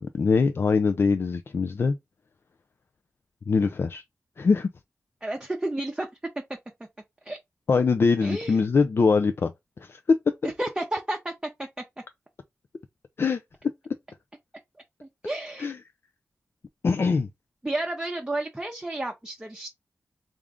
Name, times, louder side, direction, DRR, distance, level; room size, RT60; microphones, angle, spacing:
voice 1, 0.0-2.0 3.5-4.0 4.4-4.7 7.7-9.5 9.8-10.0 13.2-13.4 15.6-15.8 16.8-17.3, left 4 dB, 55° left, 0.4 m, -23 dB
voice 2, 5.2-6.1 7.2-7.4 8.2-8.6 10.4-11.3 11.6-11.7 15.0-15.7 17.6-19.7, right 1 dB, 15° right, 0.7 m, -31 dB
3.5 x 2.5 x 3.5 m
cardioid pair, 65°, 5 cm